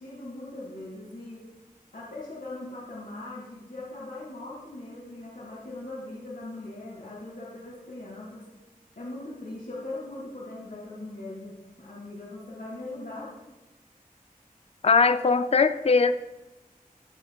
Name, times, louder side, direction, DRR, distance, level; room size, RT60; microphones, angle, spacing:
voice 1, 0.0-1.4 1.9-8.4 9.0-13.3, left 2 dB, 70° left, -4 dB, 1.9 m, -40 dB
voice 2, 14.8-16.1, left 4 dB, 45° left, 11 dB, 0.4 m, -20 dB
14.0 x 7.8 x 2.3 m, 1.1 s
wide cardioid pair, 50°, 15 cm